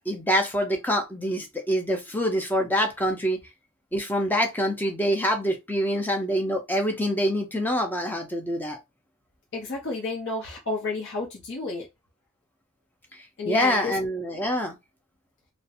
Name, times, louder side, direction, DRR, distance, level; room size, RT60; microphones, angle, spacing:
voice 1, 0.1-3.4 3.9-8.8 13.5-14.7, equal, 10° left, 0.5 m, -25 dB
voice 2, 9.5-11.9 13.4-13.9, left 3 dB, 55° left, 0.7 m, -31 dB
2.5 x 2.1 x 2.6 m
head